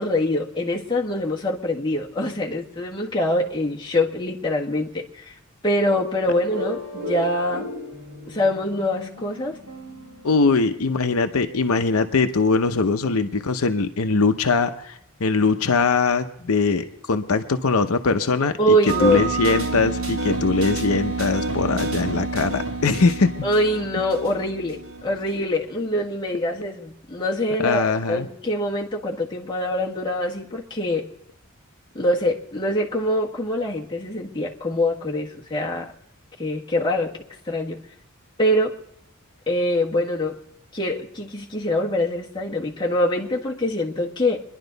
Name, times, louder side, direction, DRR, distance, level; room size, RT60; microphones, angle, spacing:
voice 1, 0.0-5.3 5.6-7.7 8.3-9.6 18.6-19.3 23.4-27.8 28.1-31.1 31.9-35.9 36.4-37.1 37.5-37.8 38.4-38.7 39.5-40.4 40.7-44.4, left 1 dB, 20° left, -3 dB, 1.5 m, -24 dB
sound 1, 6.5-11.1, left 2 dB, 45° right, 7.5 m, -35 dB
voice 2, 10.2-18.8 19.0-23.3 27.6-28.3, left 4 dB, 80° left, 7 dB, 0.7 m, -21 dB
sound 2, 18.9-25.4, right 3 dB, 80° right, 2.4 m, -28 dB
25.5 x 11.0 x 4.0 m, 0.75 s
head